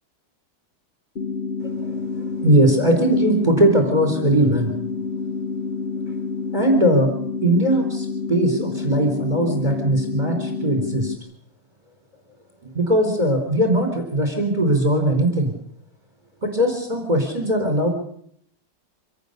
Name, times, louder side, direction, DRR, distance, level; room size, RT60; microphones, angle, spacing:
sound 1, 1.2-11.2, left 4 dB, 35° left, 1.3 m, -28 dB
voice 1, 1.6-1.9 2.4-4.7 6.5-7.1 7.4-11.1 12.6-15.5 16.4-17.9, right 1 dB, 20° right, 3 dB, 4.2 m, -20 dB
25.5 x 18.0 x 6.7 m, 0.66 s
omnidirectional pair, 2.4 m